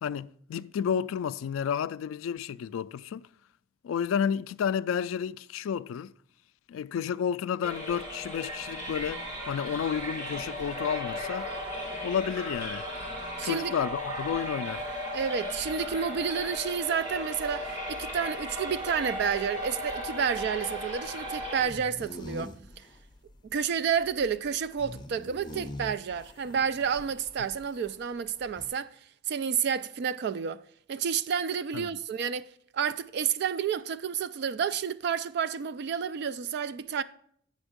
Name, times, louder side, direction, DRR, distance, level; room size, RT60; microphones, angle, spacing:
voice 1, 0.0-3.3 3.8-6.1 6.7-11.5 12.0-12.9 13.4-14.9 31.7-31.9, left 8 dB, 85° left, 0.3 m, -31 dB
sound 1, 7.6-21.6, equal, 25° right, 2.9 m, -36 dB
voice 2, 13.4-13.7 15.1-22.9 23.5-28.9 29.3-30.6 30.9-32.5 32.7-37.0, right 7 dB, 55° right, 0.3 m, -30 dB
sound 2, 15.5-28.0 28.3-28.7, left 1 dB, 20° left, 0.5 m, -46 dB
8.9 x 5.3 x 5.0 m
head